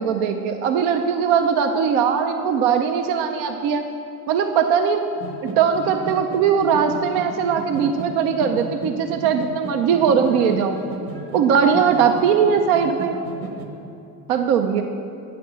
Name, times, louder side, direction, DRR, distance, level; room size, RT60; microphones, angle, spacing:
voice 1, 0.0-3.9 4.3-5.0 5.6-10.8 11.3-13.2 14.3-14.8, right 7 dB, 85° right, 6 dB, 0.6 m, -20 dB
Berber Music Dessert South Marokko, 5.1-13.7, right 3 dB, 60° right, 1.5 m, -35 dB
8.5 x 5.9 x 7.4 m, 2.7 s
supercardioid pair, 70°, 42 cm